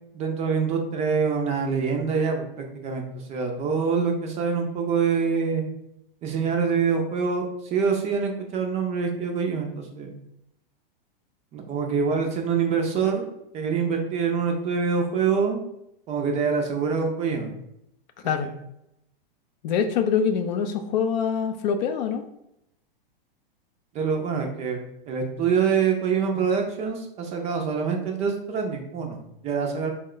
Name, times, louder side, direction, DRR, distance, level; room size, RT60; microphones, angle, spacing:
voice 1, 0.1-5.6 6.2-10.1 11.5-13.3 13.5-15.6 16.1-17.6 18.4-18.5 23.9-24.8 25.1-29.9, right 6 dB, 25° right, 3 dB, 0.4 m, -25 dB
voice 2, 19.6-22.2, left 7 dB, 50° left, 7 dB, 0.5 m, -24 dB
4.2 x 2.2 x 3.7 m, 0.81 s
hypercardioid pair, 125°, 29 cm